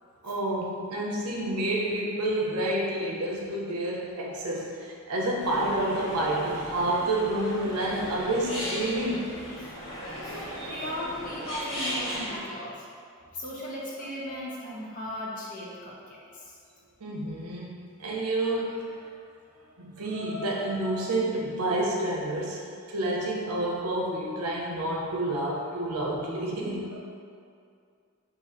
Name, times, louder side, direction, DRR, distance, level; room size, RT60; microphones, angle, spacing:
voice 1, 0.2-9.3 17.0-19.1 19.8-27.0, right 1 dB, 85° right, -2 dB, 0.6 m, -29 dB
sound 1, 5.4-12.4, equal, 60° left, 1.4 m, -36 dB
voice 2, 10.2-12.9 13.3-16.6, left 1 dB, 35° left, -5 dB, 0.6 m, -37 dB
2.8 x 2.5 x 4.1 m, 2.3 s
head